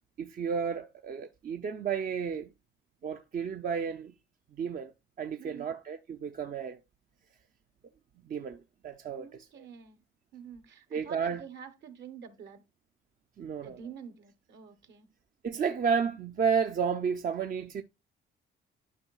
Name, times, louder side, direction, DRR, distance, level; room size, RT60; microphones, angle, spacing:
voice 1, 0.2-2.5 3.0-4.1 4.5-4.9 5.2-6.8 8.2-9.3 9.6-9.7 10.9-11.4 13.4-13.8 15.4-17.8, right 6 dB, 45° right, 0.5 m, -32 dB
voice 2, 5.4-5.7 9.2-10.0 10.3-12.6 13.6-15.1, right 7 dB, 65° right, 1.1 m, -48 dB
11.0 x 5.4 x 2.3 m
cardioid pair, 90°, 20 cm